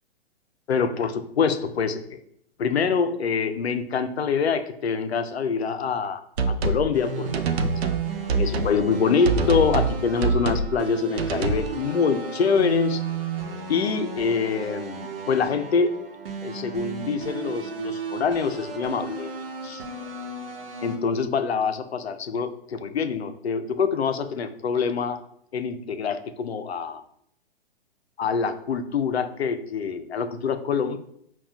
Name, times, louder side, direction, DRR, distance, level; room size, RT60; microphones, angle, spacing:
voice 1, 0.7-2.2 2.6-7.6 8.4-13.0 13.7-15.9 16.4-19.3 19.6-19.8 20.8-25.2 25.5-27.0 28.2-31.0, left 5 dB, 85° left, 9 dB, 0.5 m, -25 dB
sound 1, 6.4-6.9 7.3-8.0 8.3-8.7 9.2-9.9 10.2-10.7 11.2-11.7, right 3 dB, 85° right, 0.5 m, -24 dB
sound 2, 6.9-21.0, right 6 dB, 65° right, 0.9 m, -34 dB
5.5 x 2.3 x 2.3 m, 0.71 s
hypercardioid pair, 125°, 31 cm